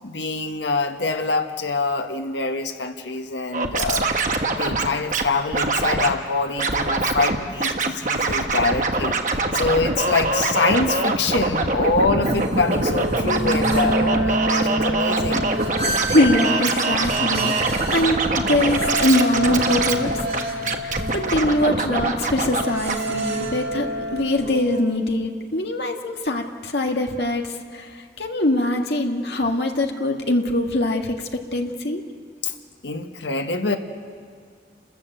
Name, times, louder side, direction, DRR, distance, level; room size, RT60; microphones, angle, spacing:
voice 1, 0.0-4.1 4.5-9.2 9.5-15.5 32.4-32.5 32.8-33.8, left 3 dB, 85° left, 5 dB, 1.4 m, -25 dB
Scratching (performance technique), 3.5-5.2 5.5-6.1 6.6-7.4 7.6-22.6 22.9-23.0, right 3 dB, 45° right, 1.3 m, -23 dB
sound 1, 12.2-24.8, right 1 dB, 70° right, 3.3 m, -28 dB
voice 2, 15.9-27.5 27.7-27.9 28.2-32.0, left 1 dB, 70° left, 3 dB, 1.8 m, -23 dB
29.5 x 14.0 x 8.0 m, 2.1 s
head